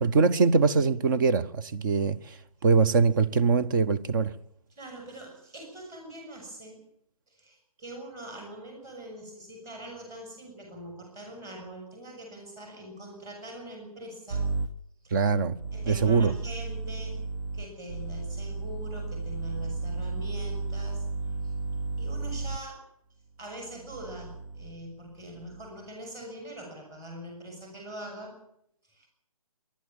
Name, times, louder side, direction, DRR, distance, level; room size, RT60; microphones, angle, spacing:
voice 1, 0.0-2.4 2.6-4.3 15.1-15.6 15.9-16.3, right 4 dB, 35° right, 0.9 m, -23 dB
voice 2, 4.7-6.8 7.3-14.5 15.0-15.2 15.7-17.2 17.5-21.6 22.0-22.8 23.4-28.3 28.8-29.1, right 1 dB, 15° right, 6.3 m, -43 dB
sound 1, 14.3-14.7 15.6-22.6 23.6-24.8 25.3-25.7, right 3 dB, 55° right, 1.2 m, -34 dB
25.5 x 11.5 x 8.9 m
figure-of-eight pair, 150°, 19 cm